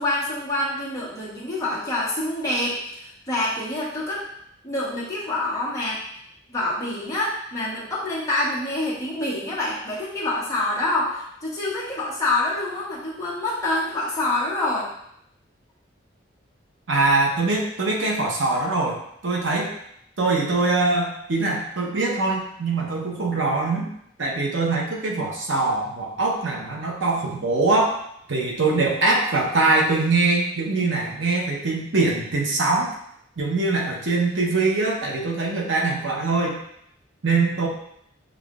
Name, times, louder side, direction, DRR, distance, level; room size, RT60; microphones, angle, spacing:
voice 1, 0.0-4.2 4.6-6.0 6.5-14.9, left 2 dB, 15° left, -7 dB, 1.1 m, -26 dB
voice 2, 16.9-19.7 20.2-23.9 24.2-28.0 28.3-32.9 33.4-36.6 37.2-37.7, right 3 dB, 75° right, -1 dB, 0.9 m, -23 dB
6.9 x 2.5 x 2.4 m, 0.73 s
head